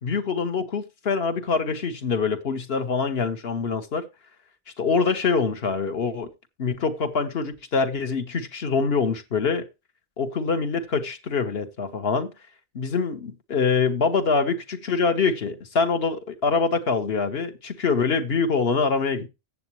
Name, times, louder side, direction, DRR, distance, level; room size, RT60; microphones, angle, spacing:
voice 1, 0.0-4.1 4.8-6.3 6.6-9.7 10.2-12.3 12.7-19.3, left 4 dB, 60° left, 1.4 m, -24 dB
14.5 x 8.3 x 3.1 m
omnidirectional pair, 1.2 m